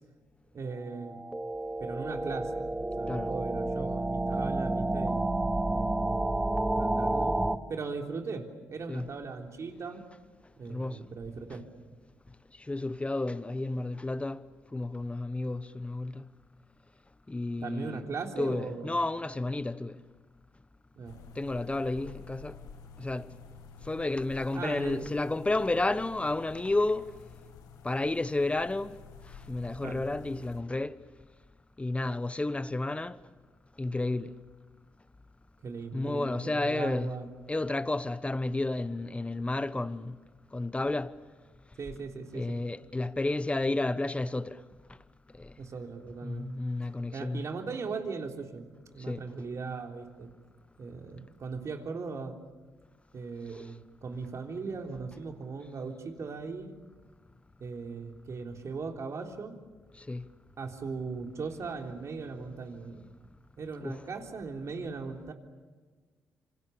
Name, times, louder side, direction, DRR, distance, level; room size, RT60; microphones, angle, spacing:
voice 1, 0.5-1.2 1.8-2.6 3.0-6.3 6.7-7.3 7.7-10.0 10.6-11.6 17.6-19.0 21.0-21.1 24.5-25.1 29.8-30.0 35.6-37.3 41.8-42.6 45.6-46.5 47.1-48.7 48.9-50.3 50.8-52.4 53.1-56.8 57.6-59.6 60.6-63.0 63.6-65.3, right 4 dB, 55° right, 3.6 m, -38 dB
sound 1, 0.9-7.6, right 2 dB, 15° right, 1.3 m, -30 dB
voice 2, 10.7-11.0 12.7-14.4 14.7-16.3 17.3-18.1 18.4-20.0 21.4-22.6 23.0-23.3 23.8-27.1 27.8-29.0 29.5-31.0 31.8-33.2 33.8-34.3 35.9-37.1 37.5-40.2 40.5-41.2 42.3-44.6 45.3-45.5 46.2-47.4 49.1-49.2 53.5-53.7 60.0-60.3 63.8-64.0, left 2 dB, 20° left, 1.2 m, -31 dB
sound 2, 21.0-30.6, left 5 dB, 75° left, 1.9 m, -50 dB
27.0 x 26.5 x 7.0 m
supercardioid pair, 50°, 6 cm